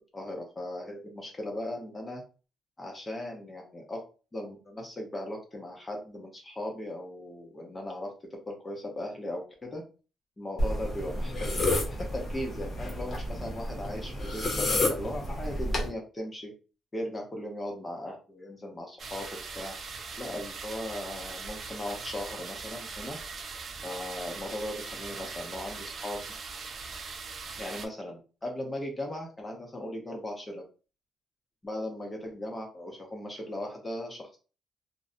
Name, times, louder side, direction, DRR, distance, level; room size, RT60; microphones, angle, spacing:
voice 1, 0.1-2.2 2.8-4.0 4.3-9.8 10.4-16.5 16.9-19.3 19.5-19.8 20.2-23.2 23.8-26.2 27.6-30.6 31.6-34.4, left 1 dB, 25° left, 1 dB, 0.7 m, -38 dB
sound 1, 10.6-15.9, left 1 dB, 40° left, 0.9 m, -30 dB
sound 2, 19.0-27.9, right 4 dB, 50° right, 0.4 m, -41 dB
2.5 x 2.1 x 2.5 m, 0.34 s
cardioid pair, 90°, 0 cm